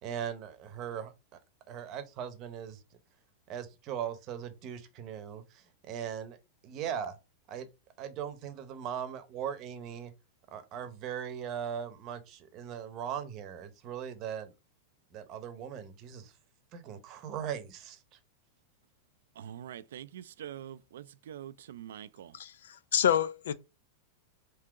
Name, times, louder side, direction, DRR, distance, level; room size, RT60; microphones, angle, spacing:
voice 1, 0.0-1.1 1.7-2.8 3.5-6.4 6.6-7.2 7.5-7.7 8.0-10.1 10.5-14.5 15.1-16.3 16.7-18.0, right 8 dB, 40° right, 0.8 m, -39 dB
voice 2, 19.4-22.4, right 10 dB, 80° right, 0.3 m, -45 dB
voice 3, 22.3-23.5, left 9 dB, 85° left, 0.4 m, -28 dB
3.7 x 2.8 x 4.6 m
supercardioid pair, 140°, 0 cm